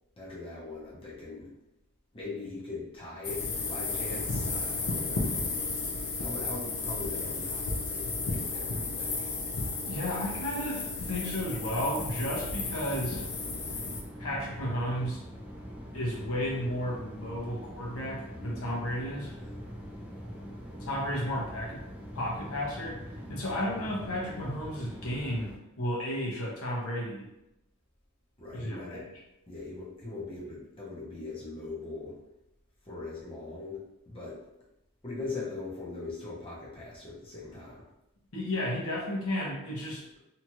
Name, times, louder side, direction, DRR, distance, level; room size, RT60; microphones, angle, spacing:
voice 1, 0.2-1.5 2.1-5.6 6.2-9.3 18.3-18.8 19.4-19.6 28.4-29.1 29.5-32.2 32.8-34.4 35.0-37.8, left 3 dB, 25° left, -6 dB, 0.7 m, -41 dB
sound 1, 3.2-14.0, left 3 dB, 90° left, 0.6 m, -33 dB
voice 2, 9.9-13.2 14.2-15.3 15.9-19.3 20.8-21.8 22.1-23.0 23.3-27.3 28.5-29.1 38.3-40.1, equal, 75° left, -4 dB, 0.9 m, -33 dB
sound 2, 11.7-25.6, equal, 5° right, 0.3 m, -43 dB
2.8 x 2.4 x 2.9 m, 0.88 s
head